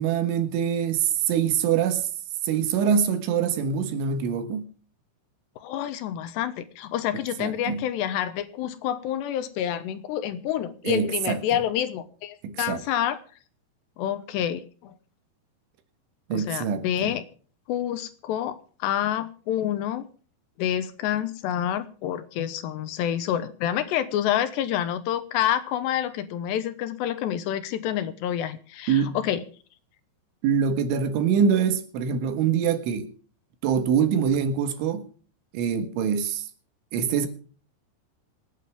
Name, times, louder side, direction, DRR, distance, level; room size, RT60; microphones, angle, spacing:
voice 1, 0.0-2.1 2.4-4.7 7.4-7.9 10.8-11.4 12.4-12.8 16.3-17.2 28.9-29.2 30.4-33.1 33.6-35.1 35.5-36.5 36.9-37.3, right 7 dB, 85° right, 3.9 m, -24 dB
voice 2, 5.6-13.2 14.0-14.9 16.3-17.2 17.7-20.1 20.6-29.4, left 11 dB, 75° left, 3.0 m, -28 dB
26.5 x 9.4 x 3.5 m
omnidirectional pair, 5.4 m